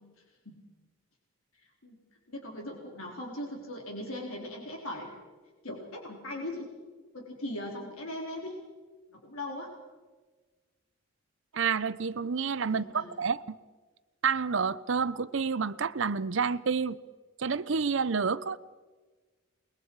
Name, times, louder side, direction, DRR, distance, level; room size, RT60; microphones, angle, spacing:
voice 1, 2.3-5.2 5.6-6.6 7.1-8.6 9.1-9.7 12.7-13.1, left 1 dB, 85° left, 3.9 m, -39 dB
voice 2, 11.5-13.6 14.2-17.0 17.4-18.6, right 5 dB, 65° right, 0.6 m, -29 dB
28.0 x 21.5 x 4.7 m
head